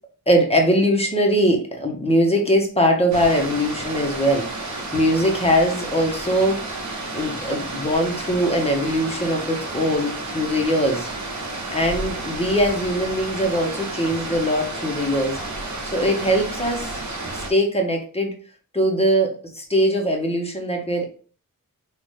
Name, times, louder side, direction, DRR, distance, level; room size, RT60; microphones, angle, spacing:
voice 1, 0.3-6.7 7.1-11.1 11.7-15.4 15.8-17.0 17.3-18.3 18.7-21.1, equal, 15° left, 2 dB, 1.3 m, -21 dB
sound 1, 3.1-17.5, right 2 dB, 55° right, 1.2 m, -31 dB
4.0 x 2.8 x 3.3 m, 0.41 s
cardioid pair, 55°, 34 cm